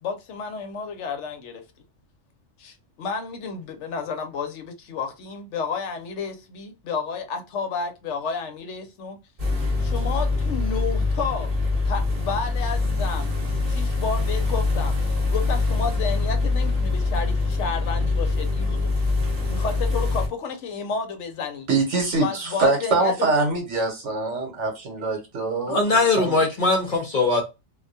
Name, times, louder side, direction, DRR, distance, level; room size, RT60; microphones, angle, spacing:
voice 1, 0.0-1.6 2.6-9.2 9.8-11.5 11.9-14.9 15.3-18.9 19.5-21.7 22.2-23.1, left 5 dB, 70° left, 0.9 m, -31 dB
sound 1, 9.4-20.3, left 3 dB, 35° right, 0.8 m, -24 dB
voice 2, 21.7-26.3, right 3 dB, 65° right, 1.1 m, -24 dB
voice 3, 25.7-27.4, left 3 dB, 50° left, 0.7 m, -20 dB
2.3 x 2.2 x 2.6 m
omnidirectional pair, 1.3 m